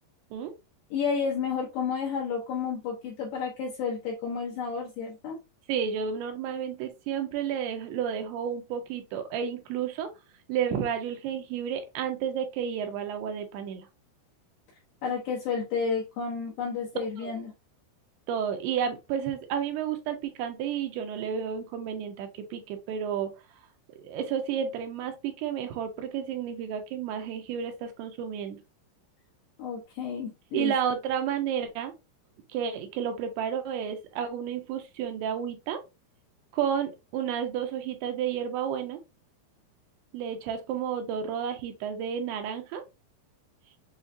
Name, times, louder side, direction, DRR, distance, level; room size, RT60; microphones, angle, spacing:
voice 1, 0.9-5.4 15.0-17.5 29.6-30.7, left 6 dB, 70° left, 2.1 m, -31 dB
voice 2, 5.7-10.1 10.5-13.9 17.2-17.3 18.3-23.3 24.0-28.6 30.5-31.9 32.5-35.8 36.5-39.0 40.1-42.8, right 8 dB, 80° right, 2.6 m, -31 dB
6.9 x 2.4 x 2.6 m
omnidirectional pair, 4.9 m